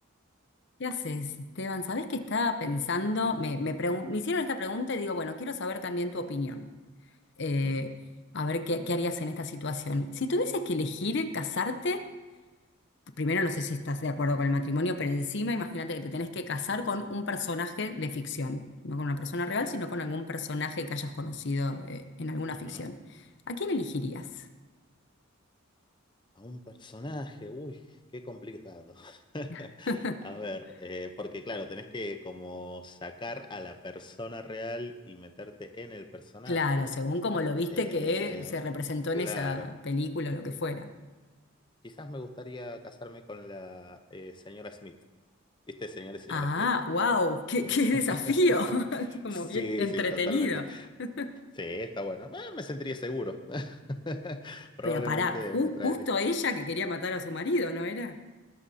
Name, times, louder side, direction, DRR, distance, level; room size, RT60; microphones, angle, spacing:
voice 1, 0.8-6.7 7.4-7.9 8.3-12.0 13.2-23.2 23.5-24.5 29.5-29.6 29.9-30.2 36.5-40.9 46.3-50.6 51.0-51.3 54.8-58.2, left 2 dB, 55° left, 9 dB, 0.8 m, -30 dB
voice 2, 22.5-22.9 26.4-27.8 28.1-30.0 30.2-36.9 37.7-38.6 39.1-39.7 41.8-44.9 45.7-46.7 49.3-50.9 51.6-56.0, left 1 dB, 20° left, 7 dB, 0.7 m, -39 dB
20.5 x 11.5 x 2.8 m, 1.2 s
head